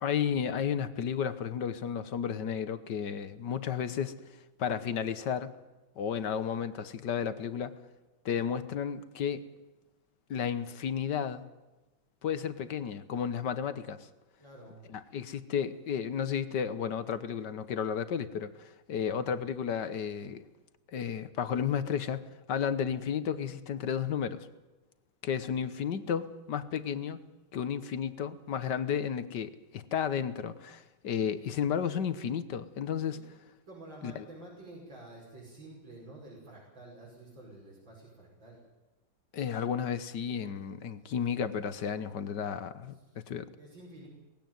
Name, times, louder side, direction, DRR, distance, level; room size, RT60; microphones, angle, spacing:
voice 1, 0.0-4.1 4.6-5.5 6.0-7.8 8.2-9.5 10.3-11.4 12.2-14.1 14.9-20.5 20.9-24.5 25.2-27.2 27.5-33.2 34.0-34.2 39.3-42.9 43.3-43.5, left 8 dB, 60° left, 1.6 m, -33 dB
voice 2, 14.4-14.8 19.0-19.2 33.0-33.2 33.6-38.6 41.0-41.3 42.9-43.3 43.6-44.1, right 2 dB, 65° right, 6.5 m, -50 dB
19.5 x 16.5 x 9.3 m
omnidirectional pair, 2.2 m